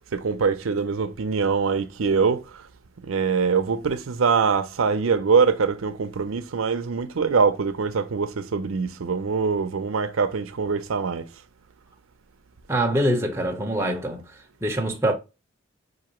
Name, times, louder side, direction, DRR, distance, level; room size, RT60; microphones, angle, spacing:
voice 1, 0.1-2.6 3.0-11.3, right 5 dB, 90° right, 0.6 m, -23 dB
voice 2, 12.7-14.2 14.6-15.1, right 1 dB, 15° right, 0.8 m, -24 dB
5.9 x 2.6 x 2.9 m
head